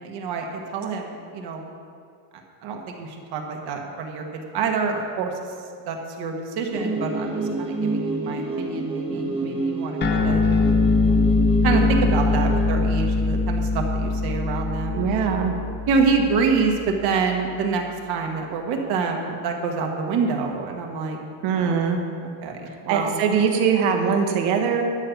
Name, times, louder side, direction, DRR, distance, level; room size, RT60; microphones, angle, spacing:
voice 1, 0.0-1.7 2.6-5.3 5.9-10.4 11.6-15.4 15.9-21.2 21.5-21.8 22.4-23.2, right 5 dB, 50° right, 2 dB, 1.5 m, -26 dB
sound 1, 6.7-12.7, right 3 dB, 10° right, 1.1 m, -29 dB
sound 2, 10.0-16.8, left 3 dB, 20° left, 0.9 m, -22 dB
voice 2, 14.9-15.5 21.4-22.0 22.9-24.8, right 6 dB, 65° right, 3 dB, 1.7 m, -21 dB
12.0 x 5.6 x 8.4 m, 2.3 s
cardioid pair, 175°, 49 cm